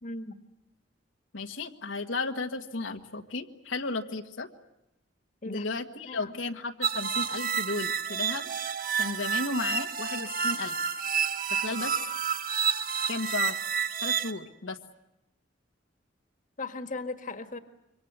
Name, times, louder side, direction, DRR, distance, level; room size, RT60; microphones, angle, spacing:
voice 1, 0.0-0.4 5.4-5.7 6.0-6.5 16.6-17.6, left 3 dB, 45° left, 9 dB, 1.8 m, -37 dB
voice 2, 1.3-4.5 5.4-8.5 9.0-10.7 11.5-11.9 13.1-13.6 14.0-14.8, left 3 dB, 80° left, 4 dB, 1.7 m, -34 dB
sound 1, 6.8-14.3, right 7 dB, 50° right, 1.4 m, -30 dB
27.0 x 24.5 x 8.0 m, 0.90 s
head